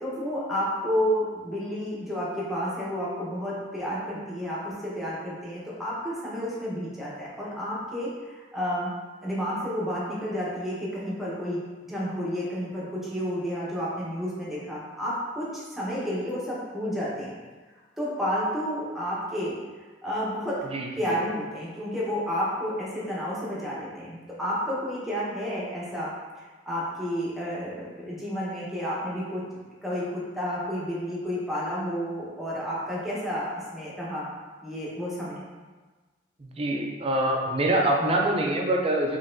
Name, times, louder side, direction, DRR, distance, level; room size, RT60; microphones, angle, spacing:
voice 1, 0.0-8.9 9.2-17.4 18.0-19.6 20.0-20.7 21.0-26.1 26.4-29.4 29.8-34.3 34.6-35.4, equal, ahead, -7 dB, 0.9 m, -31 dB
voice 2, 36.4-39.2, right 1 dB, 35° right, 0 dB, 0.5 m, -25 dB
4.0 x 3.2 x 2.5 m, 1.3 s
head